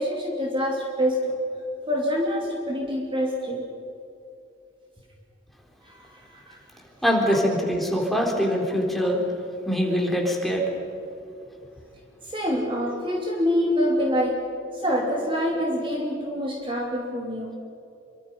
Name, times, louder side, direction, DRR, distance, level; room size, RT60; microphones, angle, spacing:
voice 1, 0.0-1.4 1.9-3.7 6.5-6.6 12.3-14.4 14.8-17.6, equal, 25° right, -1 dB, 2.9 m, -25 dB
voice 2, 7.0-9.2 9.7-10.7, equal, ahead, -1 dB, 3.8 m, -23 dB
27.5 x 24.0 x 5.5 m, 2.6 s
head